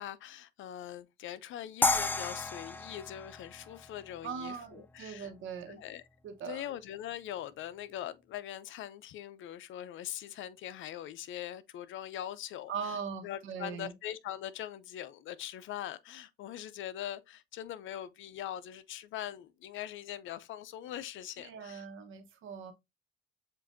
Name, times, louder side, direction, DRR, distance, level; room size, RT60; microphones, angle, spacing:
voice 1, 0.0-5.3 5.7-6.0 6.4-12.7 13.2-21.8, left 11 dB, 75° left, 0.5 m, -42 dB
sound 1, 1.8-4.9, left 3 dB, 10° left, 0.3 m, -33 dB
voice 2, 4.2-5.8 6.2-6.6 12.7-13.9 21.4-22.7, right 6 dB, 80° right, 1.2 m, -40 dB
7.4 x 2.6 x 2.5 m
cardioid pair, 90°, 20 cm